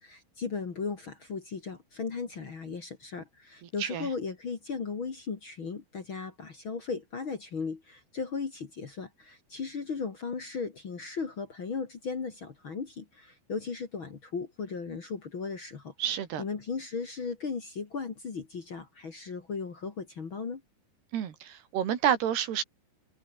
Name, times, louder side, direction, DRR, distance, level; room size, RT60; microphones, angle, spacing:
voice 1, 0.0-15.9 16.4-20.6, left 5 dB, 40° left, 1.9 m, -36 dB
voice 2, 16.0-16.4 21.1-22.6, right 9 dB, 65° right, 4.5 m, -29 dB
omnidirectional pair, 5.2 m